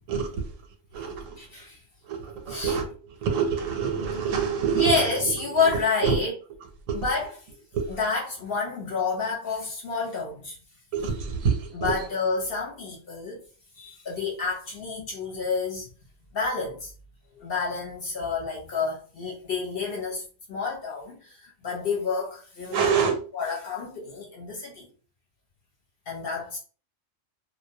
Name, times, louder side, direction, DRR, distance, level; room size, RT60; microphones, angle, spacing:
voice 1, 0.1-0.5 0.9-1.5 2.0-6.2 6.9-7.1 7.7-8.0 10.9-12.0 22.7-23.2, right 6 dB, 80° right, 1.0 m, -27 dB
voice 2, 1.4-1.8 2.5-2.8 4.8-6.3 6.9-7.3 8.0-10.6 11.7-13.4 13.8-15.9 16.3-16.9 17.4-20.2 20.5-22.9 23.3-24.9 26.1-26.6, left 4 dB, 50° left, 0.8 m, -29 dB
2.3 x 2.1 x 2.7 m
omnidirectional pair, 1.4 m